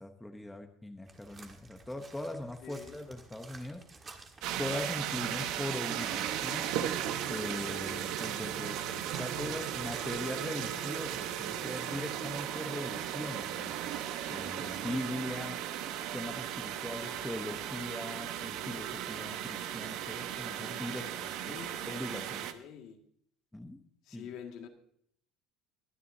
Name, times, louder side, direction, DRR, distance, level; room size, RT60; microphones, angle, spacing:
voice 1, 0.0-4.1 4.6-6.7 7.3-13.7 14.3-15.6 16.1-21.6 21.8-22.5 23.5-23.8 24.1-24.2, left 1 dB, 5° left, 4 dB, 0.9 m, -40 dB
sound 1, 1.0-10.1, right 3 dB, 20° right, 1.5 m, -52 dB
voice 2, 2.6-3.0 21.4-21.8 22.5-23.0 24.0-24.7, left 8 dB, 55° left, 3 dB, 1.9 m, -46 dB
sound 2, 4.4-22.5, right 10 dB, 65° right, 1.0 m, -36 dB
23.5 x 10.0 x 2.7 m, 0.64 s
cardioid pair, 160°, 0 cm